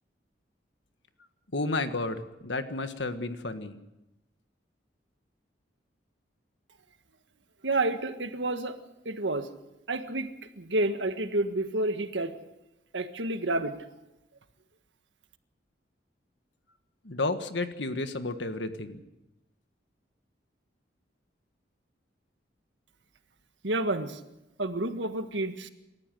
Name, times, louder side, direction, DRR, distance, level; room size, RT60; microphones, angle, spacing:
voice 1, 1.5-3.8 17.0-19.0, left 2 dB, 80° left, 9 dB, 1.6 m, -32 dB
voice 2, 7.6-8.8 9.0-9.5 9.9-10.3 10.6-12.4 12.9-13.8 23.6-24.2 24.6-25.7, right 2 dB, 85° right, 8 dB, 1.6 m, -29 dB
27.5 x 14.0 x 7.8 m, 0.96 s
head